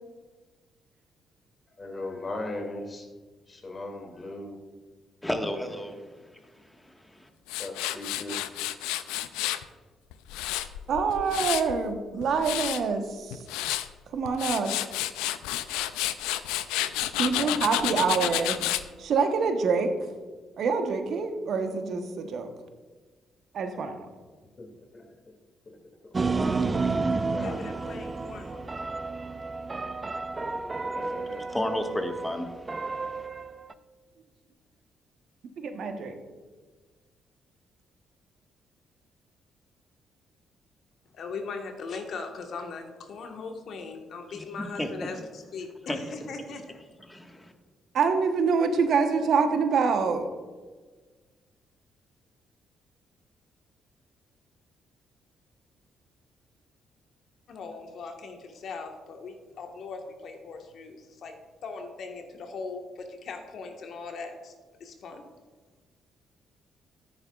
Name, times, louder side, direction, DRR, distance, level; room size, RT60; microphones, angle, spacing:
voice 1, 1.8-3.1 3.5-4.6 7.6-8.4 23.7-23.8 24.6-24.7 24.9-25.0 25.7-25.8 26.0-26.1 26.6-26.7 27.1-27.7 30.6-31.4, left 2 dB, 35° left, 2 dB, 2.7 m, -38 dB
voice 2, 5.2-6.1 6.8-7.3 31.0-31.1 31.5-33.3 44.3-45.1 45.9-46.0 47.1-47.5, left 1 dB, 10° left, 4 dB, 1.7 m, -33 dB
Tools, 7.5-9.6 10.1-11.8 12.2-12.8 13.3-13.9 14.3-18.8, left 14 dB, 75° left, 0.4 m, -30 dB
voice 3, 10.9-13.4 14.1-14.7 17.2-18.6 19.0-19.9 20.6-22.5 23.5-23.9 35.6-36.1 47.9-50.3, right 5 dB, 60° right, 6 dB, 1.1 m, -26 dB
voice 4, 17.2-18.0 27.4-28.8 41.1-46.8 57.5-61.3 61.6-64.5 64.8-65.2, left 4 dB, 60° left, 3 dB, 1.5 m, -39 dB
sound 1, 26.1-33.7, right 3 dB, 30° right, 0.5 m, -31 dB
14.0 x 9.6 x 2.5 m, 1.4 s
hypercardioid pair, 45°, 0 cm